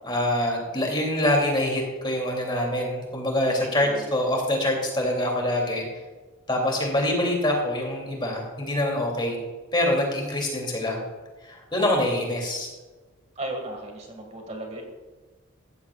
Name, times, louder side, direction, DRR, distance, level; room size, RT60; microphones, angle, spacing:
voice 1, 0.0-5.8 6.5-9.4 9.7-11.0 11.5-12.7, left 1 dB, 20° left, 0 dB, 2.9 m, -25 dB
voice 2, 3.5-4.1 13.4-14.8, right 1 dB, 30° right, 2 dB, 1.9 m, -35 dB
15.0 x 14.5 x 2.4 m, 1.3 s
head